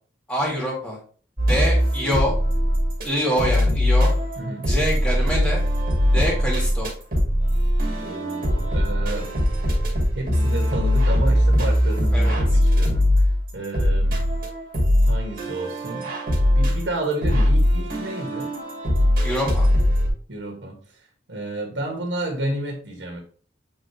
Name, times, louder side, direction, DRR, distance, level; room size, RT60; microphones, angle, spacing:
voice 1, 0.3-1.0 1.4-2.3 3.0-4.1 4.7-5.6 6.1-6.9 12.1-12.6 19.2-19.7, equal, 5° left, -3 dB, 2.5 m, -25 dB
sound 1, 1.4-3.1 3.4-20.1, equal, 50° right, 2.2 m, -21 dB
voice 2, 4.4-4.7 8.0-9.3 10.1-14.2 15.1-16.1 16.5-18.5 20.3-23.2, right 1 dB, 85° right, 1 dB, 1.9 m, -31 dB
7.6 x 4.0 x 3.1 m, 0.43 s
head